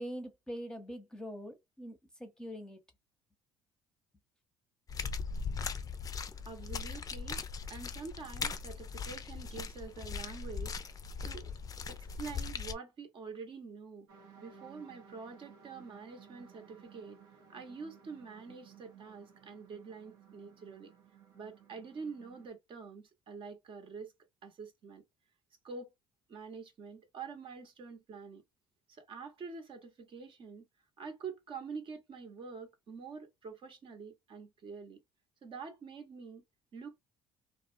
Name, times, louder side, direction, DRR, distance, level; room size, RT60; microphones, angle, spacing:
voice 1, 0.0-2.8, equal, 5° left, 0.8 m, -43 dB
sound 1, 4.9-12.7, left 5 dB, 30° left, 0.4 m, -39 dB
voice 2, 6.4-7.4 7.7-10.7 11.2-11.5 11.9-14.1 14.4-17.2 17.5-20.9 21.3-24.1 24.4-25.0 25.6-25.9 26.3-28.4 28.9-30.6 31.0-35.0 35.4-36.4 36.7-37.0, right 5 dB, 50° right, 0.8 m, -46 dB
sound 2, 14.1-22.5, right 7 dB, 80° right, 0.7 m, -58 dB
2.4 x 2.0 x 2.5 m
supercardioid pair, 70°, 11 cm